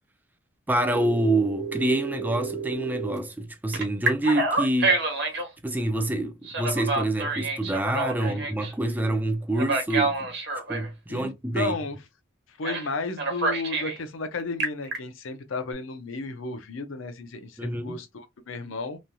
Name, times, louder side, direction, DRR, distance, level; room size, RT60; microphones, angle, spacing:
voice 1, 0.7-5.1 5.6-10.2 10.7-11.7 17.6-18.0, right 1 dB, 10° right, 0.3 m, -27 dB
Telephone, 0.9-3.2 3.7-5.5 6.5-8.7 9.5-10.9 12.6-12.9 13.2-14.0 14.4-15.0, right 3 dB, 55° right, 1.1 m, -28 dB
voice 2, 11.1-12.0 12.6-19.0, left 3 dB, 85° left, 0.6 m, -33 dB
3.1 x 2.6 x 2.2 m
head